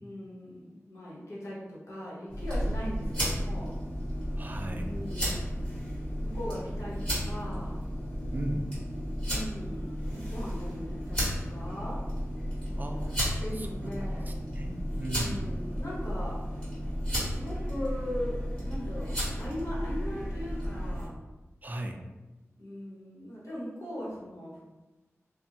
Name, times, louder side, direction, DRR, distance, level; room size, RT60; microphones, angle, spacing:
voice 1, 0.0-3.7 4.8-5.7 6.2-7.8 9.2-12.0 13.4-14.3 15.1-16.6 17.3-21.2 22.6-24.7, equal, 65° left, -7 dB, 1.1 m, -39 dB
sound 1, 2.3-21.1, equal, 20° left, 1.4 m, -33 dB
voice 2, 4.4-4.9 8.3-8.7 12.8-13.9 14.3-15.6 21.6-22.0, right 1 dB, 35° right, 3 dB, 0.3 m, -37 dB
2.5 x 2.1 x 2.8 m, 1.1 s
wide cardioid pair, 60°, 5 cm